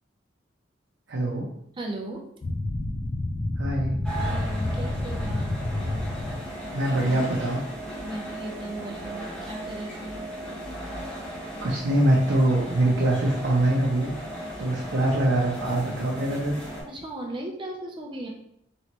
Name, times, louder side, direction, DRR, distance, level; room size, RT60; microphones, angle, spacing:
voice 1, 1.1-1.5 3.6-3.9 6.7-7.6 11.6-14.1 14.6-16.5, right 1 dB, 75° right, -4 dB, 0.6 m, -23 dB
voice 2, 1.8-2.3 4.2-5.5 8.0-10.2 16.9-18.3, right 1 dB, 25° right, 1 dB, 0.5 m, -36 dB
sound 1, 2.4-6.7, left 1 dB, 30° left, 0.3 m, -29 dB
sound 2, 4.0-16.8, right 1 dB, 5° left, 1.1 m, -36 dB
3.1 x 2.9 x 2.9 m, 0.74 s
head